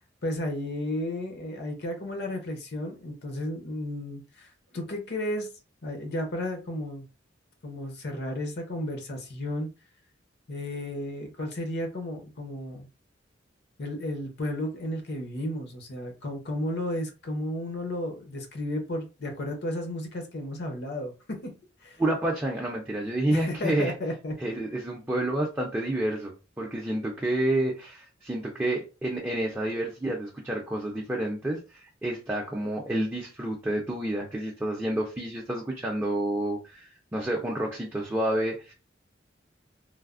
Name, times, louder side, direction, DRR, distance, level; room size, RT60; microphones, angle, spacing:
voice 1, 0.2-5.5 5.8-7.0 7.6-9.7 10.5-12.9 13.8-21.5 21.8-22.0 23.3-24.3, left 1 dB, 60° left, 3 dB, 0.7 m, -33 dB
voice 2, 22.0-23.9 24.4-38.7, right 1 dB, 10° right, -2 dB, 0.4 m, -29 dB
3.2 x 2.0 x 2.4 m, 0.31 s
head